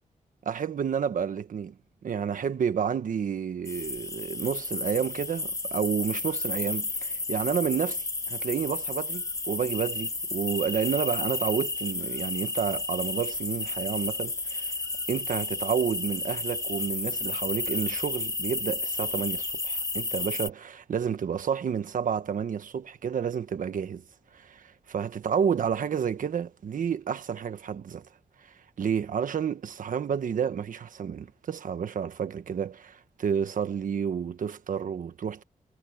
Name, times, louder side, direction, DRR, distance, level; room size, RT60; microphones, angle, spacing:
voice 1, 0.4-1.7 2.0-14.7 15.1-24.0 24.3-28.1 28.8-35.4, right 7 dB, 75° right, 1.3 m, -30 dB
sound 1, 3.6-20.5, left 3 dB, 25° left, 1.0 m, -32 dB
wide cardioid pair, 170°, 14 cm